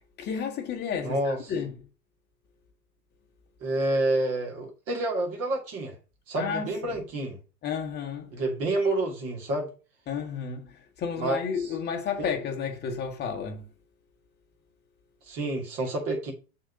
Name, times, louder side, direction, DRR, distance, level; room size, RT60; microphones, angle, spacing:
voice 1, 0.0-1.8 6.4-7.0 7.6-8.3 10.1-13.7, left 6 dB, 20° left, 1.4 m, -32 dB
voice 2, 1.0-1.4 3.6-5.9 6.3-7.4 8.3-9.7 11.2-11.4 12.2-12.3 15.3-16.3, right 2 dB, 30° right, 2.5 m, -28 dB
6.3 x 4.0 x 5.3 m
figure-of-eight pair, 105°, 49 cm